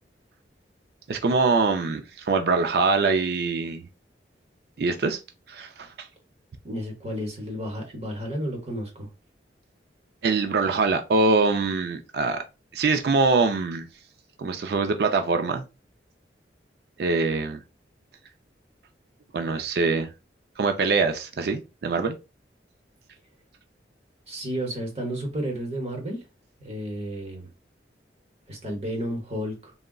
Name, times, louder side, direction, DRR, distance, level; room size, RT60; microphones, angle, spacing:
voice 1, 1.1-3.9 4.8-5.2 5.5-6.1 10.2-12.4 12.7-13.9 14.4-15.6 17.0-17.6 19.3-20.1 20.6-22.2, right 4 dB, 60° right, 0.4 m, -23 dB
voice 2, 6.6-9.1 24.3-26.2 26.6-27.5 28.5-29.7, equal, 35° right, 0.8 m, -32 dB
3.6 x 2.1 x 2.2 m
head